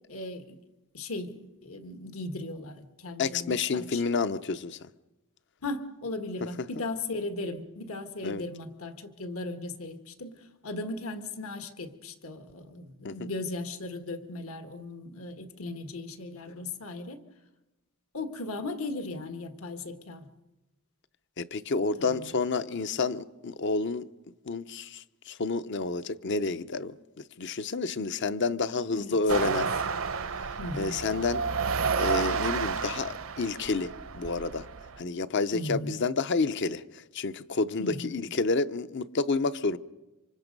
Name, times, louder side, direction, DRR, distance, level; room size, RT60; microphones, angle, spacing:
voice 1, 0.1-0.6 0.9-4.0 5.6-10.3 10.6-17.2 18.1-20.3 22.0-22.3 28.9-29.5 30.6-31.0 35.5-36.0 37.8-38.2, left 2 dB, 75° left, 1.6 m, -37 dB
voice 2, 3.2-4.8 6.6-6.7 8.2-8.4 13.0-13.3 21.4-24.1 24.4-27.0 27.4-29.7 30.7-31.4 32.0-34.7 35.0-39.8, left 4 dB, 55° left, 0.7 m, -29 dB
sound 1, 29.3-35.0, right 5 dB, 60° right, 0.7 m, -31 dB
26.5 x 25.5 x 5.3 m
head